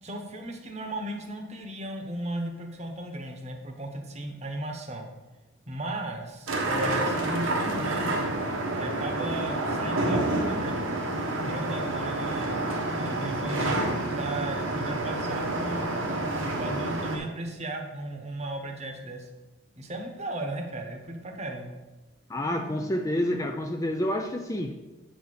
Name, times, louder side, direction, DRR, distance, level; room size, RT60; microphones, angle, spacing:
voice 1, 0.0-5.1 5.7-8.3 8.8-10.8 11.4-15.8 16.2-19.3 19.8-21.7, right 1 dB, 30° right, 3 dB, 1.0 m, -36 dB
sound 1, 6.5-17.2, right 2 dB, 90° right, 1.4 m, -29 dB
voice 2, 22.3-24.8, left 1 dB, 15° left, 4 dB, 0.4 m, -28 dB
8.1 x 4.2 x 6.5 m, 1.1 s
head